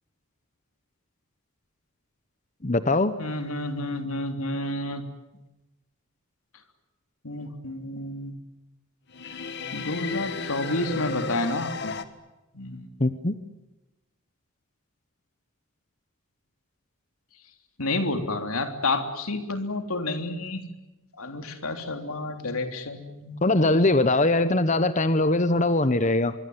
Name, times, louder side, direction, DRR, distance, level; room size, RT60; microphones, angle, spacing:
voice 1, 2.6-3.2 13.0-13.3 23.4-26.3, left 2 dB, 35° left, 12 dB, 1.1 m, -21 dB
voice 2, 3.2-5.0 7.2-8.3 9.7-12.0 12.5-12.9 17.8-20.6 21.2-23.8, left 2 dB, 90° left, 7 dB, 3.5 m, -30 dB
sound 1, 9.1-12.0, left 4 dB, 55° left, 1.8 m, -33 dB
24.5 x 23.5 x 9.7 m, 0.99 s
head